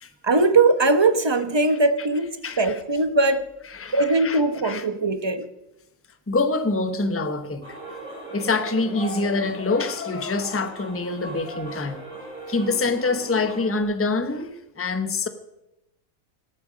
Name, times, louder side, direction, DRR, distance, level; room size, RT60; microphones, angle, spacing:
voice 1, 0.2-3.5 3.9-5.5, right 3 dB, 20° right, 0.9 m, -20 dB
voice 2, 2.4-2.7 3.7-4.8 6.3-7.8 8.3-12.0 12.5-15.3, left 3 dB, 10° left, 0.8 m, -25 dB
sound 1, 7.6-13.8, right 2 dB, 30° left, 7.5 m, -39 dB
19.0 x 14.0 x 5.1 m
omnidirectional pair, 1.4 m